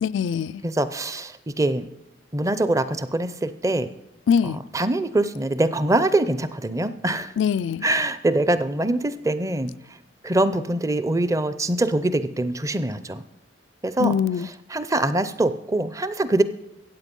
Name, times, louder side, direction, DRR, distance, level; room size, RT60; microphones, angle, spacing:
voice 1, 0.0-0.6 4.3-4.6 7.4-7.8 14.0-14.5, left 7 dB, 65° left, 0.3 m, -22 dB
voice 2, 0.6-1.9 2.3-3.9 4.7-7.4 7.8-9.7 10.2-13.2 13.8-14.2 14.7-16.4, right 2 dB, 15° right, 0.5 m, -23 dB
14.5 x 8.4 x 5.3 m
head